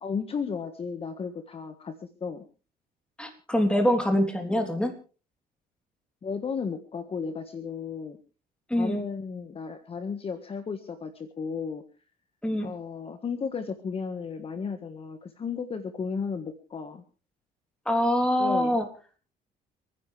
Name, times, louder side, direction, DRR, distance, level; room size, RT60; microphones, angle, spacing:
voice 1, 0.0-2.4 6.2-8.2 8.7-11.8 12.6-17.0 18.4-18.8, left 5 dB, 35° left, 8 dB, 1.5 m, -34 dB
voice 2, 3.2-4.9 8.7-9.0 12.4-12.7 17.8-18.9, equal, 5° left, 4 dB, 3.3 m, -24 dB
29.5 x 10.0 x 3.4 m, 0.35 s
cardioid pair, 110°, 17 cm